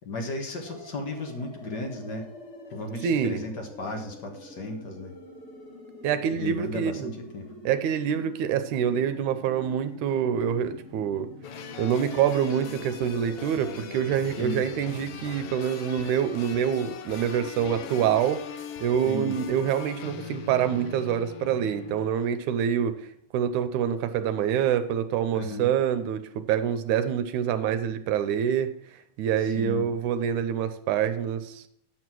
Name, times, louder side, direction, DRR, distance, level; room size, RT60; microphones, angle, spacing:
voice 1, 0.0-2.3 2.7-5.1 6.3-7.4 14.4-14.6 19.0-19.4 25.3-25.7 29.4-29.9, left 2 dB, 50° left, 3 dB, 1.3 m, -35 dB
sound 1, 0.6-15.5, left 2 dB, 30° left, 1.3 m, -46 dB
voice 2, 3.0-3.4 6.0-7.1 7.7-11.3 11.8-18.5 18.8-23.1 23.3-28.7 29.2-31.6, right 8 dB, 75° right, 11 dB, 2.1 m, -26 dB
sound 2, 11.4-22.1, left 6 dB, 75° left, 1.4 m, -40 dB
9.3 x 6.3 x 6.1 m, 0.69 s
omnidirectional pair, 3.7 m